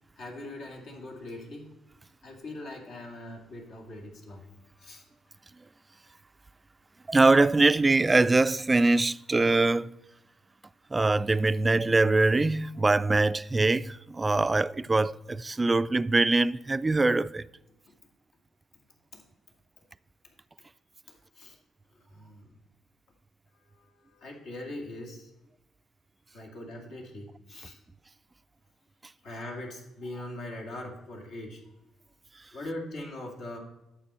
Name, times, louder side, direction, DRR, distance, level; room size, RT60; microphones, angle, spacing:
voice 1, 0.2-1.7 2.2-4.4 4.8-5.0 21.1-21.5 22.1-22.5 23.7-25.3 26.3-27.7 29.2-31.6 32.5-33.6, left 1 dB, 75° left, 2.4 m, -41 dB
voice 2, 7.1-9.9 10.9-17.4, right 3 dB, 20° right, 0.3 m, -23 dB
11.5 x 7.0 x 4.3 m
cardioid pair, 90°, 0 cm